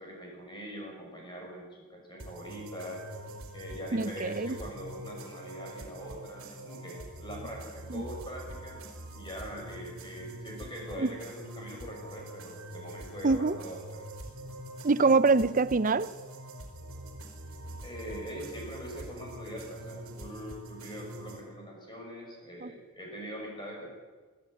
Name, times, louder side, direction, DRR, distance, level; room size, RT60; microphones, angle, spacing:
voice 1, 0.0-3.0 3.5-8.8 9.1-14.0 17.8-23.9, equal, 20° left, 6.6 m, -42 dB
sound 1, 2.2-21.4, right 1 dB, 70° right, 4.2 m, -44 dB
voice 2, 3.9-4.6 7.9-8.0 11.0-11.1 13.2-13.6 14.8-16.1 22.6-22.7, right 3 dB, 35° right, 0.6 m, -25 dB
24.0 x 12.5 x 9.1 m
head